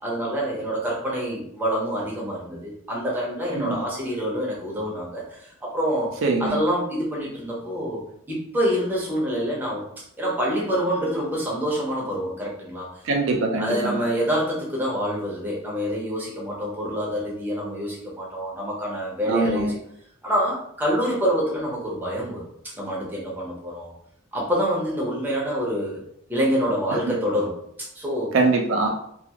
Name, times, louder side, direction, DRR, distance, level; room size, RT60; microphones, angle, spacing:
voice 1, 0.0-8.0 8.3-9.9 10.2-13.0 13.6-19.8 20.2-23.9 24.3-26.0 26.3-28.4 28.8-28.9, equal, 10° right, -4 dB, 0.6 m, -26 dB
voice 2, 6.2-6.6 13.0-14.0 19.3-19.7 27.1-27.2 28.3-28.9, right 3 dB, 65° right, 2 dB, 0.4 m, -23 dB
2.4 x 2.3 x 2.8 m, 0.70 s
head